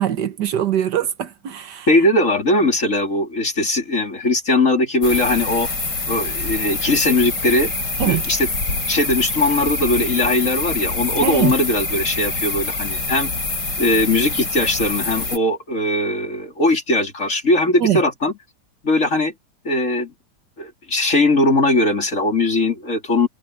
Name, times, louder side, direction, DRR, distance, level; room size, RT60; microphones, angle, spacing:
voice 1, 0.0-1.9 8.0-8.2 11.2-11.5 17.8-18.0, right 11 dB, 70° right, 1.6 m, -22 dB
voice 2, 1.9-5.7 6.1-7.7 8.0-8.5 8.9-13.3 13.8-18.3 18.8-19.3 19.6-20.1 20.6-23.3, left 2 dB, 45° left, 3.5 m, -19 dB
sound 1, 5.0-15.4, left 3 dB, 70° left, 5.8 m, -25 dB
omnidirectional pair, 1.9 m